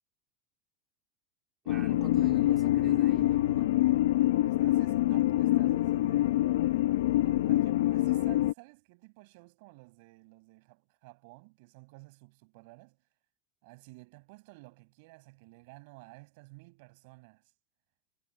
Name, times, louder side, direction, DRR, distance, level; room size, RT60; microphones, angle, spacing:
voice 1, 1.6-3.7, right 8 dB, 20° right, 2.7 m, -46 dB
sound 1, 1.7-8.5, left 15 dB, 80° left, 0.8 m, -25 dB
voice 2, 4.4-6.5 7.2-13.0 13.6-17.5, right 26 dB, 50° right, 5.9 m, -53 dB
supercardioid pair, 170°, 0 cm